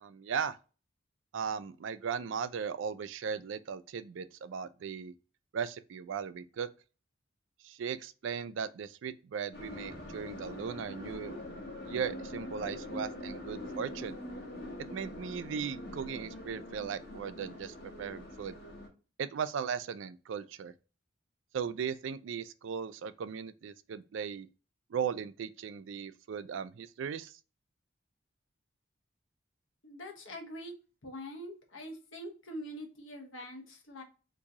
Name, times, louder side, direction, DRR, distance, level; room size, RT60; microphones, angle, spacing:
voice 1, 0.0-0.6 1.3-5.1 5.5-6.7 7.6-11.4 11.8-14.2 14.9-18.6 19.2-20.7 21.5-24.5 24.9-27.4, right 7 dB, 75° right, 0.3 m, -37 dB
sound 1, 9.5-18.9, left 1 dB, 50° left, 1.0 m, -43 dB
voice 2, 29.8-30.7 31.0-34.0, equal, 80° left, 1.0 m, -44 dB
2.9 x 2.7 x 3.5 m
head